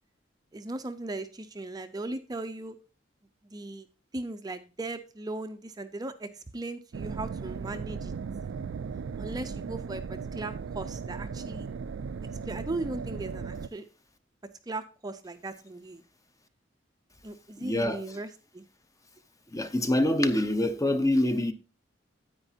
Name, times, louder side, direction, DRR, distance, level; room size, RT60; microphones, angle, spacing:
voice 1, 0.5-2.8 3.4-3.9 4.1-8.1 9.2-11.7 12.4-13.8 14.7-16.0 17.2-18.7, right 2 dB, 20° right, 0.5 m, -38 dB
sound 1, 6.9-13.7, right 5 dB, 75° right, 0.4 m, -37 dB
voice 2, 17.6-18.0 19.5-21.5, left 1 dB, 15° left, 0.7 m, -25 dB
9.8 x 8.9 x 2.7 m
head